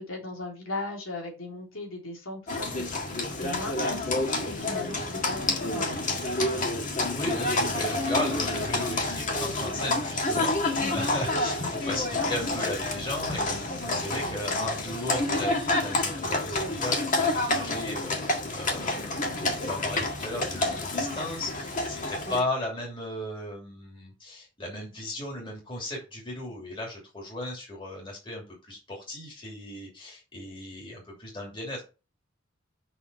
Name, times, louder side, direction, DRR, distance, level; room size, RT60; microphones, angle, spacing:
voice 1, 0.0-6.8 10.7-11.0 12.2-12.3 22.2-22.4, left 2 dB, 85° left, 0 dB, 3.3 m, -38 dB
Livestock farm animals working animals, 2.5-22.4, left 2 dB, 40° left, 1.8 m, -29 dB
voice 2, 7.1-31.8, left 1 dB, 25° left, -3 dB, 2.8 m, -36 dB
6.0 x 5.6 x 4.4 m, 0.30 s
head